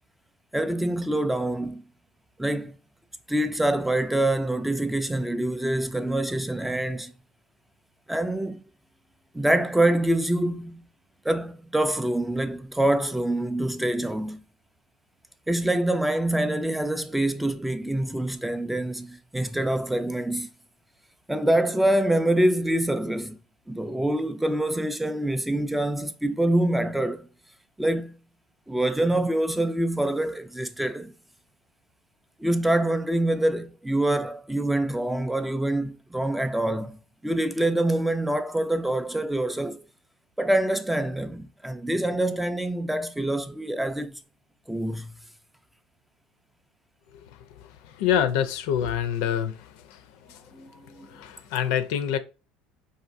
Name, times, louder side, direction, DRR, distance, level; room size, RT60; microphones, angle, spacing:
voice 1, 0.5-1.8 2.4-2.7 3.3-7.1 8.1-8.6 9.3-10.8 11.3-14.4 15.5-20.5 21.3-23.4 23.7-27.3 27.8-28.1 28.7-31.1 32.4-37.0 37.2-39.8 40.4-44.2 44.7-45.1 50.5-50.7 51.0-51.1, right 1 dB, 5° right, 0.3 m, -25 dB
voice 2, 48.0-49.6 50.3-50.4 51.1-52.2, left 9 dB, 70° left, 0.4 m, -25 dB
4.1 x 2.6 x 2.5 m
hypercardioid pair, 80°, 2 cm